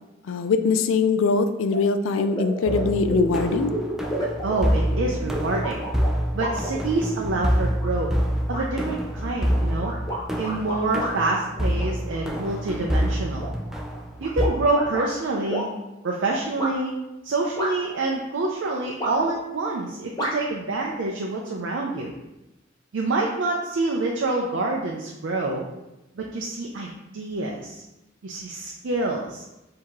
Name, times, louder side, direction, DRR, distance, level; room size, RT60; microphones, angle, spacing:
voice 1, 0.3-3.7, left 4 dB, 80° left, 9 dB, 0.3 m, -22 dB
sound 1, 1.7-1.8 2.2-7.2 7.8-8.2 8.5-8.7 9.2-11.1 11.6-12.5 12.9-15.1 15.5-15.7 16.6-16.7 17.6-18.0 19.0-19.4 20.2-20.3, right 1 dB, 20° left, 0.9 m, -31 dB
sound 2, 2.7-14.5, equal, ahead, 0.3 m, -27 dB
voice 2, 4.4-5.8 6.3-8.1 8.5-9.9 10.4-13.5 14.2-15.7 16.0-16.9 17.2-22.1 22.9-25.7 26.2-27.8 28.2-29.4, right 2 dB, 70° right, -1 dB, 0.5 m, -27 dB
4.5 x 2.8 x 3.6 m, 0.97 s
head